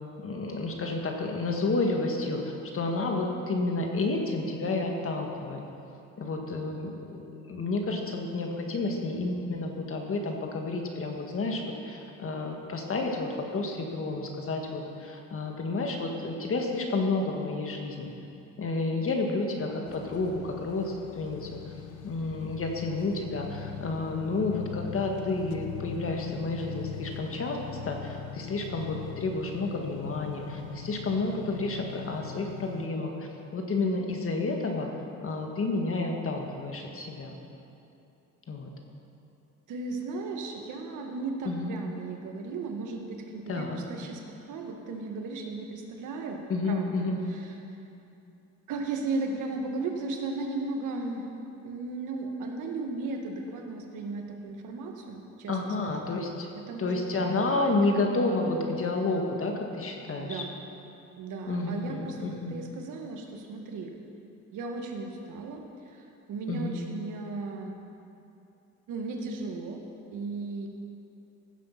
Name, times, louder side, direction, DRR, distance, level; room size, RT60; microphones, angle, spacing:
voice 1, 0.2-5.6 6.2-18.1 18.6-21.5 22.0-27.6 27.8-33.1 33.5-34.9 35.2-37.4 38.5-38.7 41.5-41.8 43.5-43.8 46.5-47.2 55.5-56.5 56.8-60.4 61.5-62.6 66.5-66.8, left 3 dB, 45° left, 2 dB, 1.8 m, -30 dB
sound 1, 19.9-32.9, left 7 dB, 85° left, 0.7 m, -41 dB
voice 2, 39.7-47.5 48.7-51.3 51.6-56.1 56.7-57.0 60.2-60.5 61.2-63.9 64.5-67.8 68.9-69.8 70.1-70.7, right 3 dB, 85° right, 3 dB, 1.6 m, -36 dB
15.5 x 7.5 x 5.9 m, 2.8 s
cardioid pair, 90°, 30 cm